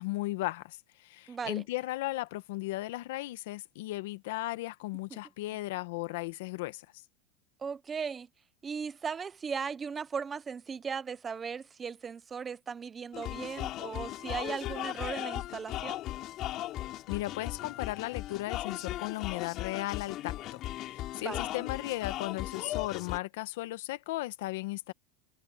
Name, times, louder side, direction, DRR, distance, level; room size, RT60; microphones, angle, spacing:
voice 1, 0.0-6.9 17.1-20.6 20.9-24.9, left 18 dB, 70° left, 1.2 m, -36 dB
voice 2, 1.3-1.6 5.1-5.2 7.6-8.3 8.6-16.0 21.2-21.5, right 6 dB, 15° right, 0.7 m, -37 dB
sound 1, 13.1-23.2, left 15 dB, 35° left, 5.0 m, -37 dB
supercardioid pair, 155°, 0 cm